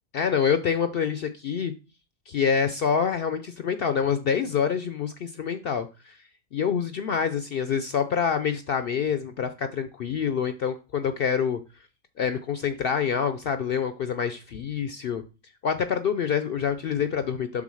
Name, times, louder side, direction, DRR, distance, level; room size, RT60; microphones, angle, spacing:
voice 1, 0.1-1.7 2.3-6.2 6.5-11.6 12.2-15.2 15.6-17.6, left 7 dB, 65° left, 0.6 m, -26 dB
7.6 x 3.6 x 6.2 m
omnidirectional pair, 1.4 m